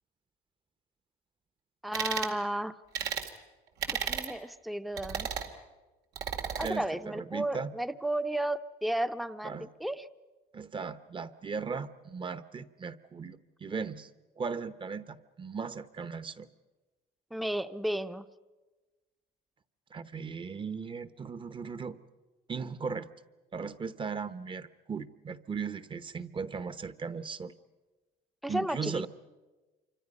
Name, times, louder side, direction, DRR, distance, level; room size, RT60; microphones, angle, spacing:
voice 1, 1.8-2.8 3.9-5.3 6.5-10.1 17.3-18.3 28.4-29.1, right 1 dB, ahead, 11 dB, 0.7 m, -33 dB
sound 1, 1.9-2.3 2.9-3.3 3.8-4.3 5.0-5.5 6.2-6.7, right 7 dB, 80° right, 2.3 m, -33 dB
voice 2, 6.6-7.7 9.4-9.7 10.5-14.1 14.4-16.5 19.9-22.0 22.5-23.1 23.5-27.5 28.5-29.1, right 5 dB, 30° right, 14 dB, 1.0 m, -37 dB
28.0 x 25.5 x 5.4 m, 1.2 s
cardioid pair, 110°, 17 cm